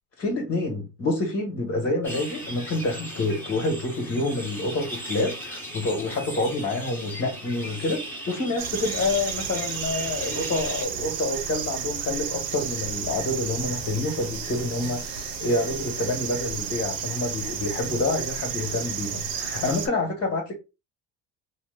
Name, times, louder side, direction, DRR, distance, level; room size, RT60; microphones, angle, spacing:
voice 1, 0.2-20.6, left 2 dB, 30° left, 1.4 m, -28 dB
sound 1, 2.0-10.8, equal, 5° left, 1.5 m, -37 dB
sound 2, 8.6-19.9, right 7 dB, 65° right, 1.0 m, -32 dB
3.0 x 3.0 x 2.3 m
hypercardioid pair, 80°, 46 cm